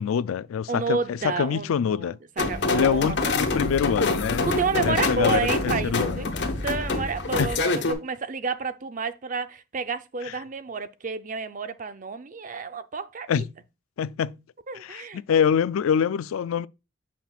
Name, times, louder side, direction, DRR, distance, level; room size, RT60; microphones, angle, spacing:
voice 1, 0.0-2.2 2.7-4.5 4.8-5.5 5.8-6.3 7.4-7.5 13.3-13.4 14.0-14.4 14.8-16.7, left 7 dB, 90° left, 0.3 m, -25 dB
voice 2, 0.7-3.4 4.5-13.5 14.7-15.2, right 4 dB, 40° right, 0.5 m, -30 dB
sound 1, 2.4-7.9, left 3 dB, 60° left, 1.2 m, -26 dB
7.0 x 5.9 x 2.4 m
head